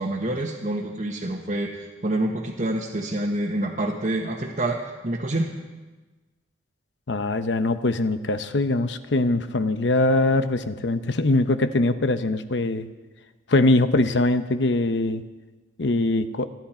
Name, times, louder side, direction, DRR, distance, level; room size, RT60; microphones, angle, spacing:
voice 1, 0.0-5.5, right 1 dB, 45° right, -2 dB, 1.3 m, -27 dB
voice 2, 7.1-12.9 13.5-15.2 15.8-16.5, left 2 dB, 75° left, 10 dB, 0.9 m, -22 dB
29.5 x 11.0 x 4.4 m, 1.2 s
head